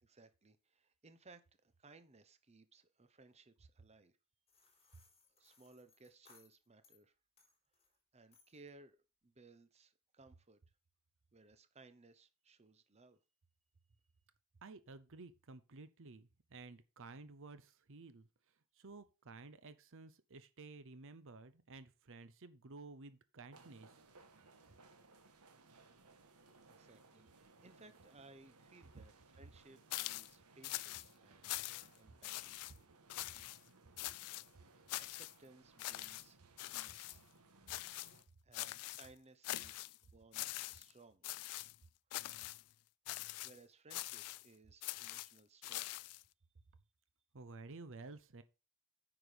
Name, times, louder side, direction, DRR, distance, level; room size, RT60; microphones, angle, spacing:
voice 1, 0.0-4.2 4.8-5.0 5.3-7.1 8.1-9.0 9.2-10.6 11.3-13.2 26.7-32.5 35.0-36.4 36.7-37.2 38.4-41.2 43.4-46.1, right 3 dB, 30° right, 0.9 m, -63 dB
sound 1, 4.5-7.0 7.4-8.0 8.3-8.7, left 5 dB, 25° left, 4.2 m, -69 dB
voice 2, 14.6-24.0 28.9-29.0 47.3-48.4, right 3 dB, 60° right, 0.8 m, -54 dB
sound 2, 23.5-38.2, right 3 dB, 85° right, 1.5 m, -64 dB
sound 3, 29.9-30.3 30.6-31.1 31.4-32.0 32.2-32.7 33.1-33.6 34.0-34.5 34.9-35.3 35.8-36.3 36.6-37.2 37.7-38.2 38.5-39.1 39.4-40.0 40.3-40.9 41.2-41.8 42.1-42.6 43.1-43.6 43.9-44.5 44.8-46.2, left 17 dB, 90° left, 0.4 m, -44 dB
9.4 x 6.0 x 5.1 m
head